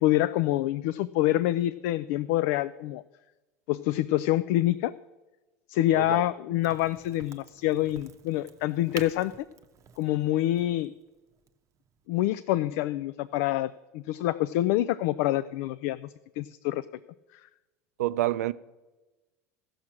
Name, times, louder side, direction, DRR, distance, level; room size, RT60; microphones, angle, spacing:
voice 1, 0.0-3.0 3.7-4.9 5.7-9.3 10.0-10.9 12.1-16.8 17.3-17.4, left 15 dB, 70° left, 0.3 m, -26 dB
voice 2, 5.9-6.3 18.0-18.5, right 15 dB, 90° right, 0.4 m, -28 dB
Crack, 6.6-12.1, right 7 dB, 40° right, 0.7 m, -48 dB
14.5 x 6.4 x 5.9 m
hypercardioid pair, 95°, 8 cm